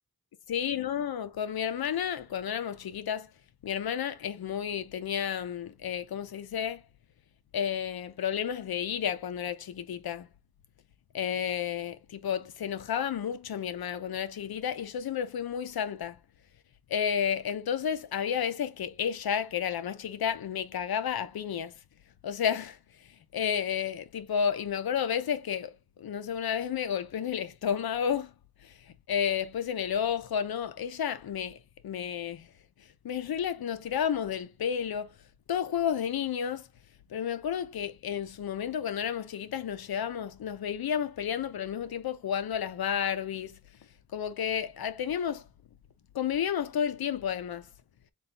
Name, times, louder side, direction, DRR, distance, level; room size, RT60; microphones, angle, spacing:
voice 1, 0.5-3.3 3.6-6.8 7.5-10.3 11.1-16.2 16.9-21.7 22.2-22.8 23.3-28.3 28.6-31.6 31.8-32.5 33.0-35.1 35.5-36.7 37.1-43.6 44.1-45.5 46.1-47.7, left 8 dB, 90° left, 0.6 m, -31 dB
4.0 x 2.3 x 4.1 m
wide cardioid pair, 110°, 36 cm